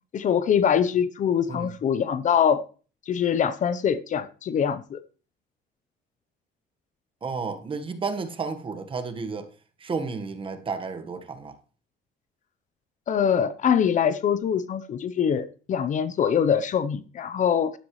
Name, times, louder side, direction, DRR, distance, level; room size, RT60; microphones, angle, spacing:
voice 1, 0.1-2.6 3.1-5.0 13.1-17.7, left 8 dB, 45° left, 0.8 m, -23 dB
voice 2, 7.2-9.5 9.8-11.6, right 4 dB, 30° right, 1.5 m, -32 dB
12.0 x 11.5 x 3.2 m
cardioid pair, 110°, 17 cm